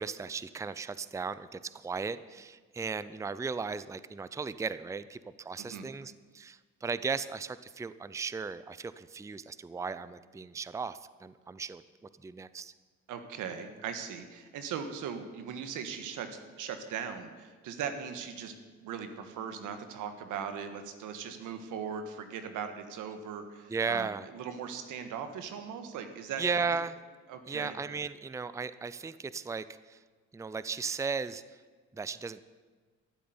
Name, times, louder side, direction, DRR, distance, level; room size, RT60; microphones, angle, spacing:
voice 1, 0.0-11.8 12.2-12.7 23.7-24.3 26.4-27.0 27.5-30.0 30.3-31.6 31.9-32.4, right 5 dB, 10° right, 15 dB, 0.5 m, -36 dB
voice 2, 13.1-18.5 18.8-26.5 27.3-27.8, right 7 dB, 90° right, 8 dB, 1.6 m, -39 dB
13.0 x 8.0 x 9.6 m, 1.4 s
cardioid pair, 90°, 30 cm